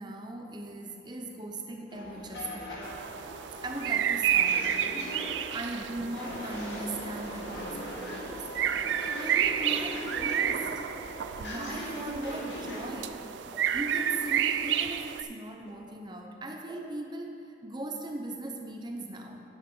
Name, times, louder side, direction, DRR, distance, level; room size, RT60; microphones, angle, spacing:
voice 1, 0.0-3.0 3.6-5.0 5.5-8.8 9.2-10.7 11.4-13.3 13.7-19.4, right 1 dB, 25° right, 3 dB, 0.7 m, -39 dB
sound 1, 1.9-13.1, equal, 85° left, 1.5 m, -40 dB
sound 2, 2.8-15.2, right 9 dB, 85° right, 0.3 m, -31 dB
sound 3, 9.0-9.1 10.0-10.1 11.1-11.3 12.5-12.7 13.5-13.6 14.6-14.8 15.6-15.8 16.6-16.8, right 1 dB, 5° left, 1.4 m, -53 dB
10.0 x 7.8 x 3.8 m, 2.5 s
head